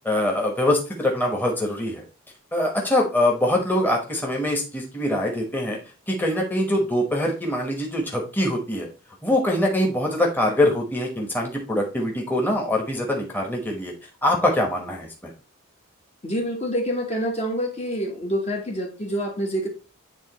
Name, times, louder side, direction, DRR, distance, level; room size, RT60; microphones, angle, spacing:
voice 1, 0.0-2.0 2.5-5.8 6.1-8.9 9.2-13.9 14.2-15.3, left 1 dB, 10° left, 0 dB, 1.1 m, -23 dB
voice 2, 16.2-19.7, equal, 30° left, 1 dB, 1.2 m, -27 dB
9.0 x 3.6 x 3.0 m, 0.33 s
head